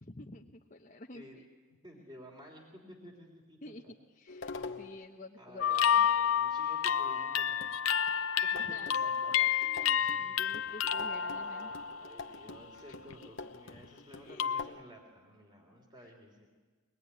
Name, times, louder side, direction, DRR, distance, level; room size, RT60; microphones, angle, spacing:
voice 1, 0.0-1.4 3.6-6.1 8.6-9.2 9.5-11.7 13.7-13.9 14.2-14.6 16.0-16.1, left 2 dB, 35° left, 1 dB, 1.0 m, -50 dB
voice 2, 1.8-3.6 3.8-3.9 4.5-4.9 5.4-7.7 8.5-8.6 9.0-9.5 9.9-10.5 10.7-16.5, equal, 20° right, 1 dB, 3.6 m, -53 dB
sound 1, 4.3-5.1 7.0-7.1 7.6-14.8, left 3 dB, 65° left, 1.0 m, -46 dB
sound 2, 5.6-12.5 12.9-13.3 14.4-14.6, left 8 dB, 90° left, 0.7 m, -30 dB
23.5 x 20.5 x 9.8 m, 1.4 s
head